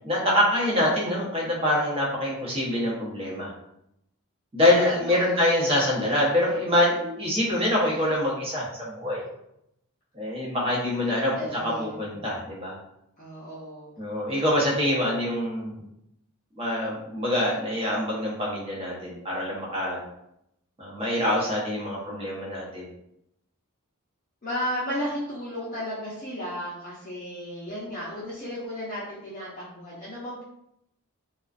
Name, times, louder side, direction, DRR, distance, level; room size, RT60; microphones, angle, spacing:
voice 1, 0.0-3.5 4.5-9.2 10.1-11.3 11.6-12.7 14.0-15.8 16.5-20.0 20.8-22.9, left 1 dB, 25° right, -5 dB, 0.7 m, -25 dB
voice 2, 5.1-5.8 10.8-12.0 13.2-14.0 24.4-30.4, equal, 35° left, -8 dB, 0.6 m, -34 dB
2.3 x 2.2 x 2.4 m, 0.80 s
head